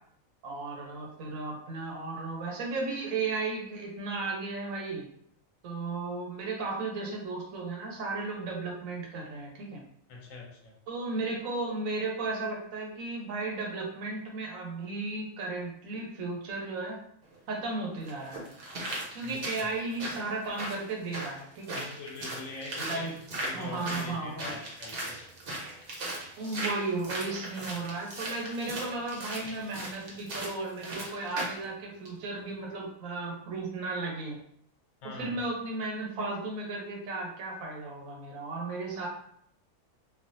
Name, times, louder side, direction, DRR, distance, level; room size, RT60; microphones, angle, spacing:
voice 1, 0.4-5.1 5.6-9.8 10.9-17.0 17.5-18.5 19.1-21.8 22.8-23.1 23.4-24.5 26.4-34.4 35.0-39.1, right 3 dB, 80° right, 0 dB, 1.2 m, -35 dB
voice 2, 10.1-10.8 19.2-19.7 21.7-23.1 23.4-25.2 35.0-35.4, left 4 dB, 75° left, 1 dB, 1.1 m, -43 dB
sound 1, 17.2-17.3 18.1-31.6 32.0-32.1, right 1 dB, 50° right, 0.9 m, -38 dB
3.2 x 2.4 x 2.6 m, 0.69 s
omnidirectional pair, 1.4 m